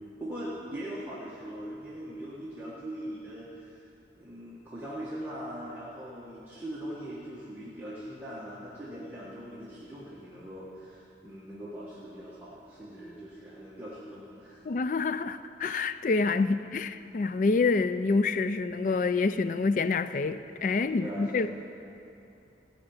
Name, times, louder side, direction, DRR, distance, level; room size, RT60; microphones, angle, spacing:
voice 1, 0.2-3.8 4.1-14.6 20.9-21.5, right 1 dB, 10° right, 1.4 m, -41 dB
voice 2, 14.6-21.5, left 4 dB, 45° left, 0.3 m, -27 dB
16.5 x 5.8 x 8.8 m
head